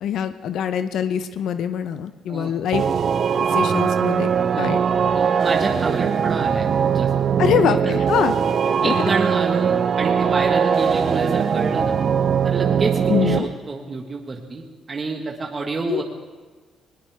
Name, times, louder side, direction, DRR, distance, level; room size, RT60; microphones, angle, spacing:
voice 1, 0.0-2.8 3.5-4.3 4.6-4.8 7.4-8.3 8.8-8.9 13.1-13.5 15.9-16.0, left 9 dB, 75° left, 10 dB, 0.7 m, -23 dB
sound 1, 2.7-13.4, right 7 dB, 55° right, 0.8 m, -20 dB
voice 2, 5.1-7.1 7.5-7.9 8.8-12.0 12.4-16.0, right 3 dB, 35° right, 1 dB, 1.5 m, -28 dB
20.5 x 20.0 x 3.5 m, 1.5 s
cardioid pair, 90°, 0 cm